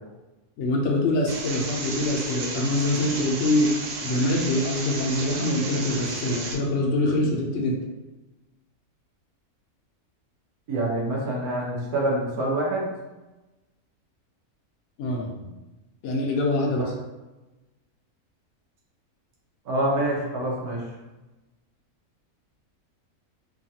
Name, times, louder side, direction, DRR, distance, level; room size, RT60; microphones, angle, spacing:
voice 1, 0.6-7.8 15.0-15.5 16.0-16.9, left 1 dB, 65° left, -1 dB, 0.8 m, -24 dB
sound 1, 1.3-6.5, right 3 dB, 65° right, 0.8 m, -33 dB
voice 2, 10.7-12.9 16.8-16.9 19.6-20.8, right 1 dB, 85° right, -4 dB, 1.3 m, -26 dB
3.1 x 2.3 x 2.7 m, 1.1 s
omnidirectional pair, 1.6 m